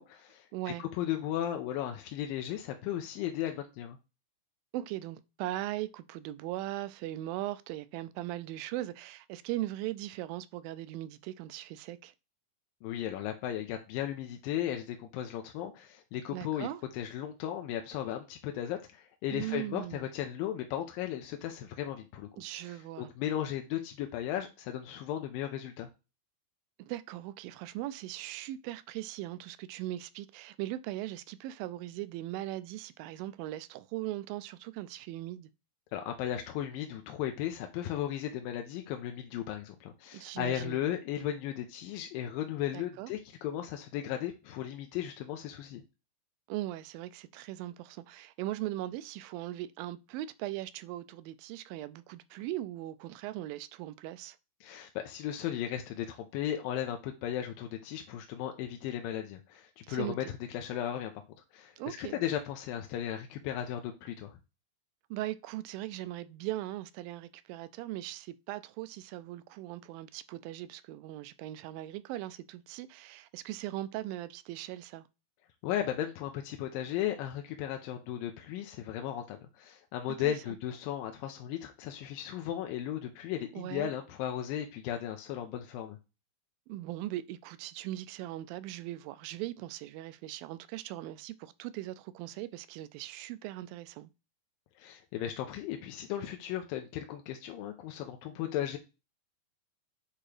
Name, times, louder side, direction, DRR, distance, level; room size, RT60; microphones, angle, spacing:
voice 1, 0.0-0.5 0.8-4.0 12.8-16.7 16.9-22.3 22.6-25.9 35.9-45.8 54.6-61.1 61.5-64.4 75.6-86.0 94.8-98.8, left 11 dB, 85° left, 2.4 m, -36 dB
voice 2, 0.5-0.8 4.7-12.1 16.3-16.8 19.3-20.1 22.4-23.1 26.8-35.5 40.1-40.8 42.7-43.1 46.5-54.4 59.9-60.2 61.8-62.2 65.1-75.0 80.2-80.6 83.5-83.9 86.7-94.1, right 15 dB, 85° right, 2.3 m, -39 dB
8.7 x 2.9 x 4.8 m
omnidirectional pair, 4.1 m